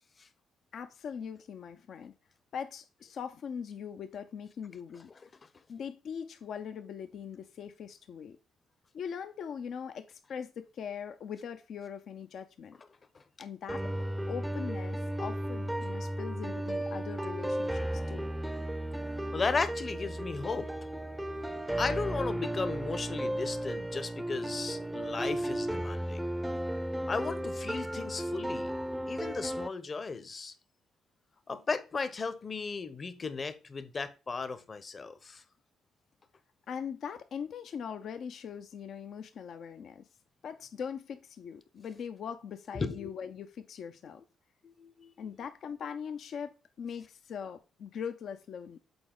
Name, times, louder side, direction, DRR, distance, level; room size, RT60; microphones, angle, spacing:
voice 1, 0.7-2.1 2.5-5.1 5.7-8.4 8.9-12.8 13.4-13.9 14.3-18.3 36.7-40.1 40.4-44.2 45.2-48.8, left 7 dB, 65° left, 0.5 m, -41 dB
sound 1, 13.7-29.7, right 1 dB, 5° right, 0.5 m, -34 dB
voice 2, 19.3-20.7 21.8-26.2 27.1-28.7 29.1-30.5 31.5-35.4 42.7-43.1 44.6-45.3, left 4 dB, 40° left, 0.9 m, -35 dB
7.0 x 4.2 x 3.8 m
hypercardioid pair, 50°, 0 cm